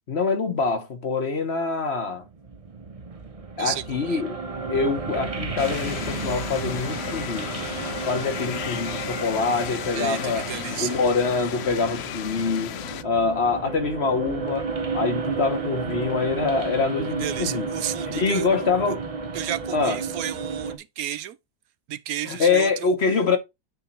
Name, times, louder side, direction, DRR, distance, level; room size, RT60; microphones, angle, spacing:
voice 1, 0.1-2.2 3.6-4.4 4.7-7.5 8.1-10.4 10.8-12.8 13.0-14.7 14.9-17.7 18.1-19.0 19.7-20.0 22.3-23.4, left 4 dB, 45° left, 1.2 m, -25 dB
sound 1, 2.3-20.8, right 4 dB, 30° right, 0.7 m, -32 dB
voice 2, 3.6-4.2 9.9-11.0 17.2-18.5 19.3-21.4 21.9-22.9, right 11 dB, 75° right, 1.1 m, -32 dB
sound 2, 5.6-13.0, left 11 dB, 65° left, 0.6 m, -34 dB
9.2 x 3.6 x 4.2 m
omnidirectional pair, 1.6 m